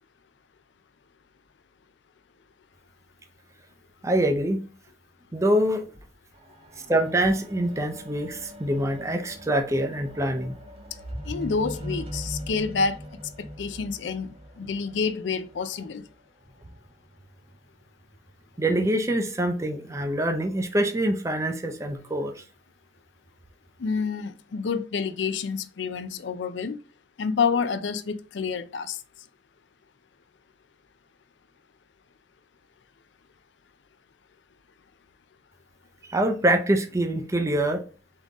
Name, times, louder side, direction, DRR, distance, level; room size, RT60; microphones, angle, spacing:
voice 1, 4.0-4.6 5.3-5.9 6.9-10.5 18.6-22.4 36.0-37.8, right 1 dB, 15° right, 0.5 m, -25 dB
sound 1, 6.3-15.9 16.7-16.8, equal, 35° right, 1.0 m, -40 dB
voice 2, 11.3-13.0 13.6-16.0 23.8-26.8 27.2-29.0, left 5 dB, 80° left, 0.5 m, -28 dB
3.9 x 3.8 x 3.5 m
head